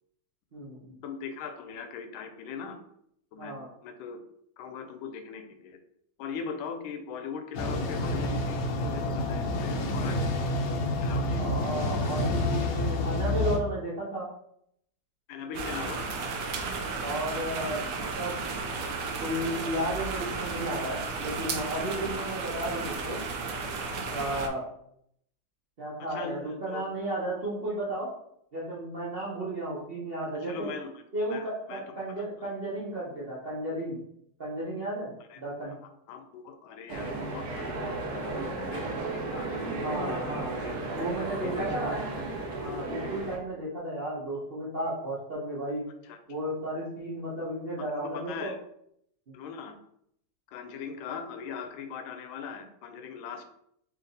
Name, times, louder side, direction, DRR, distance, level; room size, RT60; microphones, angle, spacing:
voice 1, 0.5-1.0 3.4-3.7 11.4-14.3 17.0-18.5 19.2-23.2 24.1-24.6 25.8-28.1 28.5-30.7 31.1-34.0 34.4-35.8 39.8-40.5 40.9-42.0 42.5-45.9 46.3-48.5 49.3-49.4, right 1 dB, 45° right, -7 dB, 0.7 m, -33 dB
voice 2, 1.0-2.8 3.3-3.5 3.8-4.2 4.6-5.8 6.2-10.3 11.0-11.9 15.3-16.1 26.0-26.8 30.3-31.0 31.3-31.9 32.4-32.5 35.3-35.4 36.1-40.3 40.6-40.7 41.4-42.2 42.9-43.1 46.0-46.2 47.8-48.6 49.3-49.8 50.5-53.4, left 6 dB, 85° left, 7 dB, 1.4 m, -40 dB
sound 1, 7.5-13.6, left 1 dB, 70° left, 1.2 m, -28 dB
sound 2, 15.5-24.5, right 4 dB, 85° right, 0.8 m, -34 dB
sound 3, 36.9-43.4, right 2 dB, 65° right, 1.0 m, -34 dB
3.3 x 2.8 x 3.9 m, 0.72 s
omnidirectional pair, 2.1 m